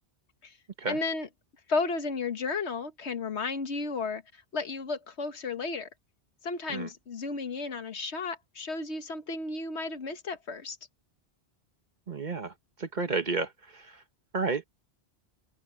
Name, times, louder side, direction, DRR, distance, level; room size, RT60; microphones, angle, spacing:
voice 1, 0.8-1.3 1.7-5.9 6.4-10.8, left 4 dB, 75° left, 1.6 m, -33 dB
voice 2, 12.1-12.5 12.8-14.0 14.3-14.6, right 4 dB, 45° right, 1.3 m, -31 dB
omnidirectional pair, 1.1 m